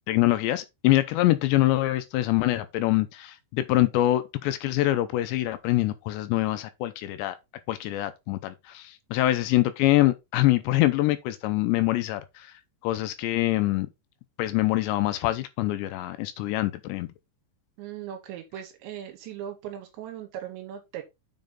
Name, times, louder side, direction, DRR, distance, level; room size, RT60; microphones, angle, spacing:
voice 1, 0.1-7.4 7.7-12.5 12.8-13.9 14.4-17.1, left 16 dB, 80° left, 2.8 m, -24 dB
voice 2, 17.8-21.0, right 10 dB, 80° right, 3.3 m, -38 dB
7.3 x 5.1 x 3.9 m
omnidirectional pair, 5.3 m